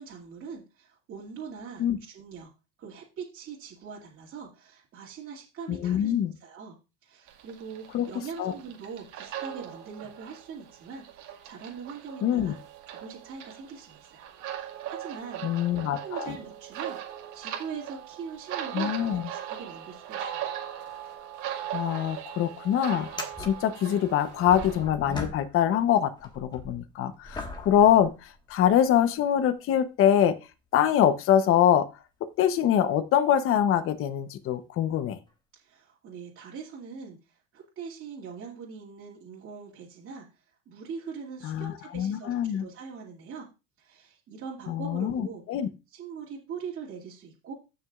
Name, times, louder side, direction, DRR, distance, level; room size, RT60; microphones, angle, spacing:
voice 1, 0.0-2.5 2.8-6.8 7.0-12.6 12.9-17.0 17.3-20.5 35.6-43.5 43.8-45.4 45.9-47.5, right 6 dB, 35° right, -5 dB, 2.5 m, -42 dB
voice 2, 5.7-6.3 7.9-8.1 8.4-8.5 12.2-12.5 15.4-16.3 18.7-19.2 21.7-23.1 23.4-30.4 30.7-31.9 32.4-35.2 41.4-42.6 44.7-45.7, left 10 dB, 35° left, 11 dB, 0.9 m, -24 dB
sound 1, 7.3-24.8, right 10 dB, 55° right, 2.0 m, -39 dB
sound 2, 21.6-21.8 22.1-22.2 23.0-25.9 26.2-28.9 29.6-29.7 33.8-33.9 35.3-35.4, left 2 dB, 10° left, 1.6 m, -40 dB
15.5 x 6.2 x 2.4 m, 0.28 s
supercardioid pair, 135°, 36 cm